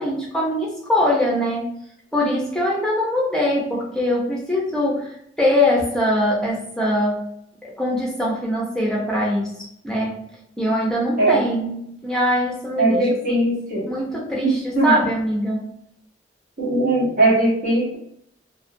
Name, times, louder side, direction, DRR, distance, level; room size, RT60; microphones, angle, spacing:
voice 1, 0.0-1.7 2.1-7.2 7.6-9.5 9.8-10.3 10.6-13.4 13.9-15.6, left 1 dB, 5° left, -4 dB, 0.6 m, -22 dB
voice 2, 12.8-13.9 14.4-14.9 16.6-18.0, right 2 dB, 50° right, -8 dB, 0.9 m, -19 dB
2.3 x 2.2 x 2.5 m, 0.73 s
head